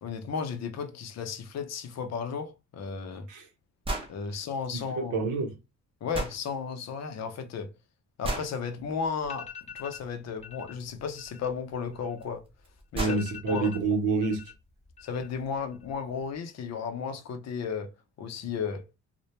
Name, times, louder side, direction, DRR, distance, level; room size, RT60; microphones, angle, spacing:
voice 1, 0.0-3.3 4.1-5.2 6.0-7.7 8.2-9.5 9.7-12.4 12.9-13.2 13.4-13.7 15.0-17.9 18.2-18.8, left 6 dB, 60° left, 0.6 m, -34 dB
sound 1, 3.8-4.1 6.1-6.4 8.2-8.5 10.8-10.9 12.2-12.3 12.6-12.7 12.9-13.2, right 1 dB, 20° right, 0.7 m, -32 dB
voice 2, 4.7-5.6 12.9-14.5, right 3 dB, 90° right, 0.8 m, -28 dB
sound 2, 8.8-8.9 9.2-10.1 10.4-10.7 11.0-12.5 12.8-12.9 13.1-14.5 14.8-15.4 15.7-16.3, left 7 dB, 20° left, 0.8 m, -44 dB
2.1 x 2.1 x 2.9 m
cardioid pair, 90°, 30 cm